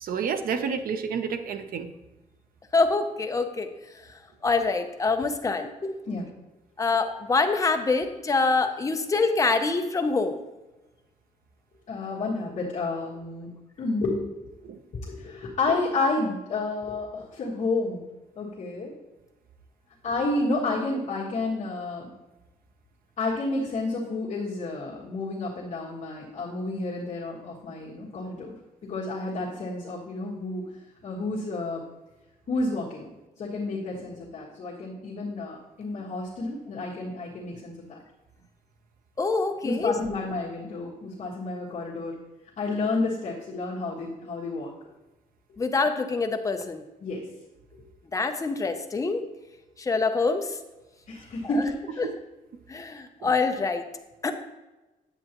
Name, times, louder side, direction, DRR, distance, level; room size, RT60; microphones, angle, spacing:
voice 1, 0.0-1.9 14.7-14.8 52.0-52.1, right 6 dB, 85° right, 8 dB, 0.7 m, -30 dB
voice 2, 2.7-3.7 4.4-5.9 6.8-10.4 17.1-17.2 39.2-39.9 45.6-46.8 48.1-49.2 49.8-50.5 51.5-51.6 52.0-52.1 52.7-53.8 54.2-54.3, left 3 dB, 20° left, 6 dB, 0.6 m, -25 dB
voice 3, 11.9-13.5 13.8-14.3 14.9-18.0 18.3-18.9 20.0-22.1 23.2-28.5 28.8-30.6 31.0-31.8 32.5-33.1 33.4-38.0 39.6-42.2 42.6-44.7 47.0-47.3 51.1-52.0, left 2 dB, 55° left, -8 dB, 1.6 m, -30 dB
9.8 x 7.7 x 3.0 m, 1.1 s
wide cardioid pair, 165°, 14 cm